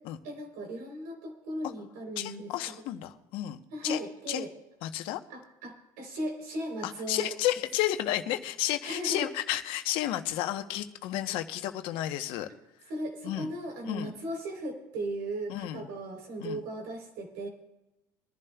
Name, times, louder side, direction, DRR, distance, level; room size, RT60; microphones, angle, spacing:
voice 1, 0.2-2.5 3.7-4.5 5.3-7.3 8.8-9.3 12.9-17.5, right 1 dB, 80° right, 1 dB, 3.6 m, -37 dB
voice 2, 2.2-4.0 4.3-4.4 4.8-5.2 6.8-12.5 13.2-13.5 13.8-14.1 15.5-15.8 16.4-16.6, left 13 dB, 70° left, 8 dB, 0.9 m, -32 dB
24.0 x 11.0 x 2.3 m, 0.95 s
supercardioid pair, 105°, 10 cm